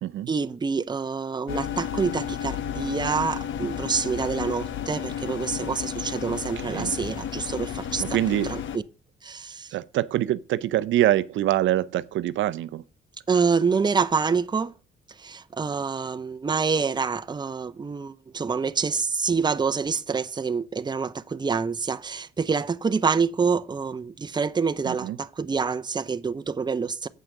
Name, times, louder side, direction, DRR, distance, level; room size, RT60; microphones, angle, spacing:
voice 1, 0.3-8.2 8.4-8.8 9.2-9.7 13.3-14.7 15.1-27.1, right 5 dB, 20° right, 0.6 m, -27 dB
sound 1, 1.5-8.8, left 9 dB, 70° left, 1.1 m, -32 dB
voice 2, 8.0-8.5 9.7-12.8 24.8-25.2, right 13 dB, 75° right, 0.5 m, -25 dB
8.4 x 5.8 x 6.5 m
cardioid pair, 90°, 20 cm